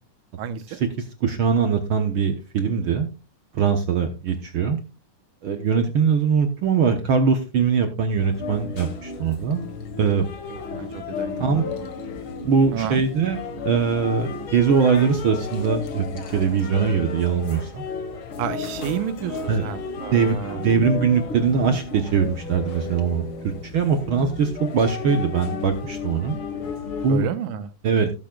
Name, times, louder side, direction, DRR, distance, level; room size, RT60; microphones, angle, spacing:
voice 1, 0.4-0.8 10.5-11.9 12.7-13.0 18.4-20.7 27.1-27.7, right 9 dB, 85° right, 10 dB, 2.4 m, -31 dB
voice 2, 1.2-3.1 3.5-4.8 5.4-9.6 10.0-10.2 10.7-10.8 11.4-11.6 12.4-13.4 13.6-17.8 19.5-19.6 20.1-26.4 27.0-27.3 27.8-28.1, right 6 dB, 65° right, 6 dB, 1.3 m, -22 dB
sound 1, 8.2-27.2, left 4 dB, 50° left, 2.0 m, -33 dB
16.5 x 8.2 x 2.3 m, 0.28 s
omnidirectional pair, 3.5 m